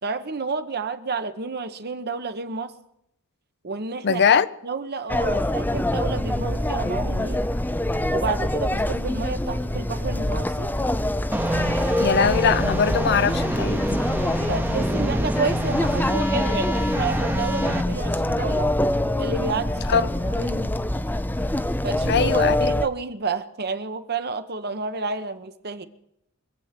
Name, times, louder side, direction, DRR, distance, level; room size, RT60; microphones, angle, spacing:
voice 1, 0.0-2.7 3.6-4.2 4.6-7.4 8.1-10.7 14.5-18.7 19.2-20.8 21.8-25.9, right 4 dB, 45° right, 1.0 m, -30 dB
voice 2, 4.0-4.5 12.0-14.0 19.9-20.1 22.1-22.7, left 6 dB, 50° left, 0.6 m, -21 dB
sound 1, 5.1-22.9, left 1 dB, 10° left, 0.5 m, -25 dB
sound 2, 11.3-17.8, right 1 dB, 10° right, 1.0 m, -27 dB
24.5 x 8.4 x 5.9 m
head